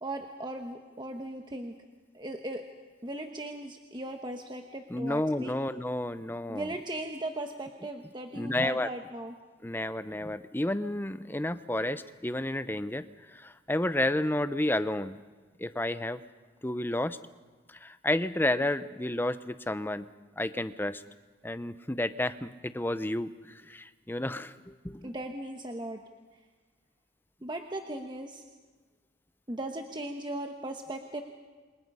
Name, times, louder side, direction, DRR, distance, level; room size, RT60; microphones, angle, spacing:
voice 1, 0.0-1.7 2.1-2.6 3.0-5.6 6.5-9.3 25.0-26.0 27.4-28.4 29.5-31.2, right 1 dB, 25° right, 4 dB, 1.2 m, -38 dB
voice 2, 4.9-6.7 8.3-8.9 9.6-15.2 15.6-16.2 16.6-17.2 17.7-20.1 20.4-21.0 21.4-25.1, left 1 dB, 10° left, 12 dB, 0.7 m, -31 dB
28.5 x 25.0 x 5.5 m, 1.3 s
head